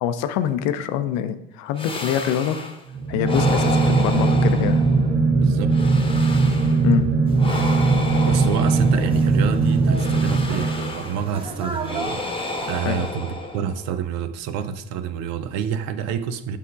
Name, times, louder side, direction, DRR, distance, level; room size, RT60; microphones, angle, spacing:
voice 1, 0.0-2.6 3.1-4.8 6.8-7.1 12.8-13.1, left 10 dB, 65° left, 11 dB, 0.6 m, -25 dB
sound 1, 1.8-2.8 3.2-5.2 5.7-6.9 7.4-9.4 9.9-11.3 11.8-13.9, left 3 dB, 15° left, 1.1 m, -31 dB
sound 2, 2.9-11.2, right 3 dB, 50° right, 1.0 m, -19 dB
voice 2, 5.4-5.9 8.2-16.6, right 8 dB, 65° right, 12 dB, 0.6 m, -28 dB
sound 3, 7.3-13.1, right 2 dB, 15° right, 1.2 m, -37 dB
7.4 x 3.5 x 5.1 m, 0.78 s
figure-of-eight pair, 50°, 30 cm